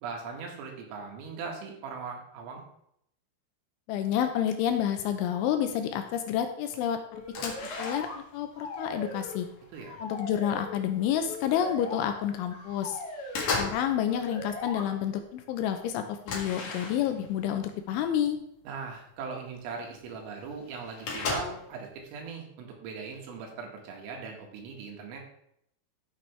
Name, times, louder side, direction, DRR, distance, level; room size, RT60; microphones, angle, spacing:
voice 1, 0.0-2.6 9.7-10.0 18.7-25.2, right 5 dB, 85° right, 1 dB, 4.5 m, -39 dB
voice 2, 3.9-8.1 8.3-9.5 10.0-13.0 13.6-18.4, left 9 dB, 80° left, 6 dB, 3.0 m, -29 dB
sound 1, 7.1-8.4 8.7-9.9 10.5-10.7 11.0-12.0 12.4-12.8 13.0-14.0 14.2-14.7 15.2-15.3 15.5-15.6 16.2-17.3 18.2-18.3 18.7-18.8 19.9-20.0 20.2-20.3 20.5-21.8, left 4 dB, 65° left, 1.6 m, -36 dB
sound 2, 7.1-8.2 8.5-9.5 9.7-10.8 11.2-12.1 12.5-13.5 14.1-14.8, left 2 dB, 40° left, 2.6 m, -40 dB
14.0 x 6.8 x 3.5 m, 0.73 s
omnidirectional pair, 5.9 m